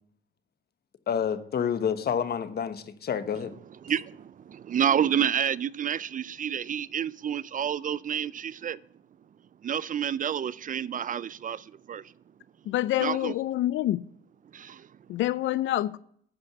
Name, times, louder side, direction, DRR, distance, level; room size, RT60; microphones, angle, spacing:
voice 1, 1.1-3.5, left 7 dB, 55° left, 1.2 m, -28 dB
voice 2, 3.8-8.8 9.6-12.1 13.0-13.3 14.5-14.9, right 9 dB, 40° right, 0.4 m, -29 dB
voice 3, 12.7-14.0 15.1-16.0, left 14 dB, 75° left, 0.4 m, -27 dB
12.0 x 5.2 x 8.3 m
cardioid pair, 90°, 20 cm